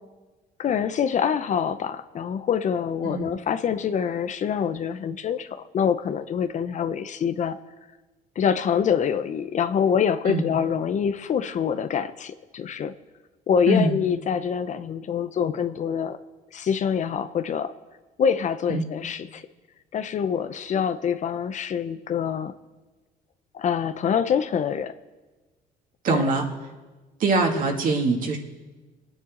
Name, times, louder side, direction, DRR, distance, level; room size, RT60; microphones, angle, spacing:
voice 1, 0.6-7.6 8.4-12.9 13.5-16.2 16.5-17.7 18.2-19.4 19.9-22.5 23.5-24.9 26.1-26.2, left 7 dB, 45° left, 11 dB, 0.7 m, -25 dB
voice 2, 26.0-26.4 27.2-28.4, right 3 dB, 55° right, 0 dB, 2.4 m, -23 dB
25.0 x 9.9 x 3.9 m, 1.2 s
cardioid pair, 110°, 17 cm